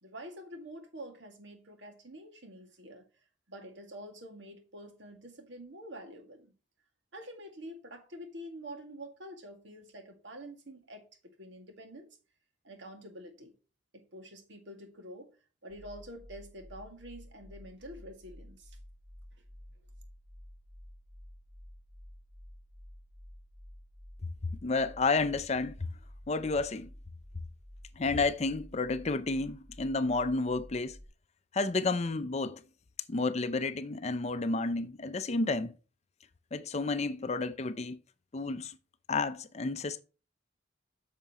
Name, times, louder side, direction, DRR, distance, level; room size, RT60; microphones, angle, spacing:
voice 1, 0.0-3.1 3.5-6.5 7.1-11.0 11.4-12.1 12.6-13.5 13.9-15.3 15.6-18.8, equal, 70° right, 2.1 m, -47 dB
sound 1, 15.7-31.1, equal, 15° right, 2.2 m, -52 dB
voice 2, 24.4-25.9 26.3-26.9 28.0-31.0 31.5-32.6 33.1-35.7 36.5-38.0 38.3-38.8 39.1-40.0, left 3 dB, 35° left, 0.5 m, -31 dB
8.5 x 6.6 x 3.0 m
head